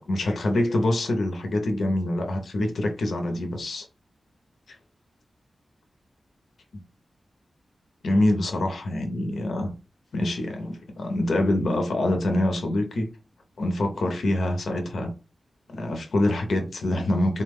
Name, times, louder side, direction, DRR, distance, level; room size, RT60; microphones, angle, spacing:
voice 1, 0.0-3.9 8.0-9.7 10.1-13.1 13.6-15.1 15.7-17.4, left 1 dB, 75° left, 0.6 m, -25 dB
3.8 x 2.1 x 3.4 m
wide cardioid pair, 115°, 0 cm